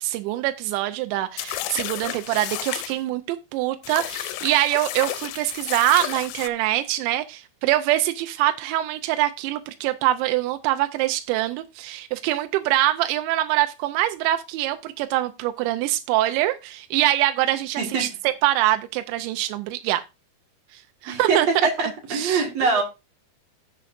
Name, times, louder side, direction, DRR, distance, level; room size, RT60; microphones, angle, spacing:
voice 1, 0.0-18.1 18.4-20.0 21.0-21.5 21.8-22.8, right 14 dB, 85° right, 2.9 m, -24 dB
sound 1, 1.4-3.0 3.8-6.5, left 15 dB, 80° left, 2.8 m, -32 dB
voice 2, 21.1-22.8, right 4 dB, 50° right, 2.1 m, -23 dB
16.0 x 7.1 x 2.6 m
omnidirectional pair, 5.2 m